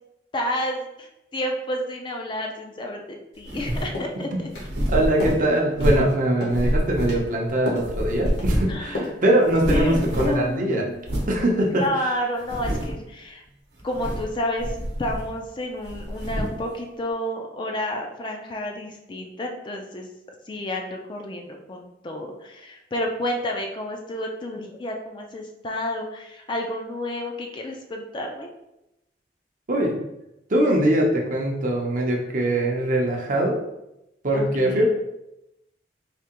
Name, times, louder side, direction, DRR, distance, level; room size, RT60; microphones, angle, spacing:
voice 1, 0.3-4.5 8.7-9.2 9.7-11.0 11.7-13.4 13.8-20.1 20.4-28.5 34.3-34.9, left 1 dB, 25° left, 2 dB, 0.4 m, -30 dB
sound 1, 3.4-4.0 4.5-6.2 6.5-7.5 7.8-8.8 9.1-9.2 9.4-10.5 11.0-11.4 11.9-12.0 12.4-13.1 13.8-14.3 14.6-15.5 15.8-16.6, equal, 75° right, 0.8 m, -27 dB
sound 2, 3.5-3.6 3.9-4.2 4.6-4.7 5.2-5.4 5.8-6.1 6.4-6.7 7.0-7.2 7.7-7.9 8.3-8.5 9.0-9.2 9.6-9.9 10.2-10.5, left 2 dB, 65° left, 1.0 m, -32 dB
voice 2, 4.9-10.8 11.3-11.8 29.7-30.0 30.5-33.6 34.2-34.9, right 1 dB, 45° right, 0 dB, 0.6 m, -22 dB
3.4 x 2.8 x 2.9 m, 0.89 s
head